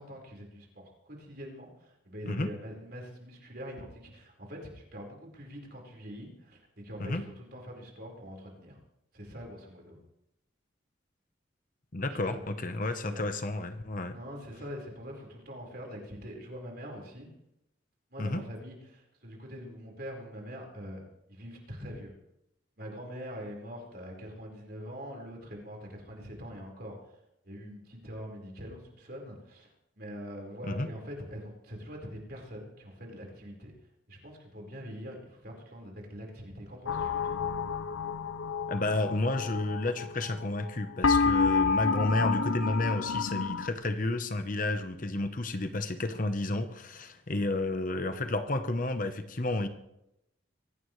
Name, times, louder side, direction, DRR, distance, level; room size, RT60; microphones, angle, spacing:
voice 1, 0.0-8.8 9.1-10.0 12.1-12.4 13.0-13.2 14.1-17.3 18.1-21.0 21.3-22.1 22.8-27.2 27.4-33.7 34.1-37.4, equal, 50° right, 0 dB, 4.6 m, -44 dB
voice 2, 11.9-14.2 18.2-18.4 30.6-30.9 38.7-49.7, left 2 dB, 40° left, 8 dB, 0.9 m, -31 dB
sound 1, 36.9-40.7 41.0-43.7, left 5 dB, 90° left, 0.7 m, -29 dB
24.0 x 16.5 x 3.2 m, 0.84 s
head